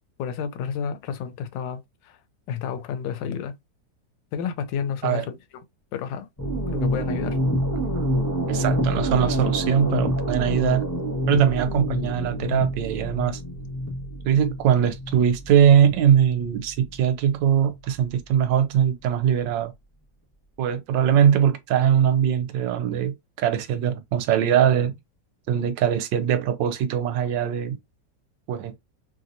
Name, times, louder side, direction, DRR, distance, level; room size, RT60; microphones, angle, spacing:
voice 1, 0.2-2.2 2.5-3.5 4.3-5.4 5.9-6.3 6.7-7.4, left 7 dB, 85° left, 1.3 m, -30 dB
sound 1, 6.4-17.9, equal, 15° left, 0.8 m, -27 dB
voice 2, 8.5-10.8 11.3-13.4 14.2-19.7 20.6-25.0 25.5-27.8 28.5-28.8, right 9 dB, 80° right, 1.3 m, -21 dB
3.2 x 2.8 x 2.5 m
omnidirectional pair, 1.9 m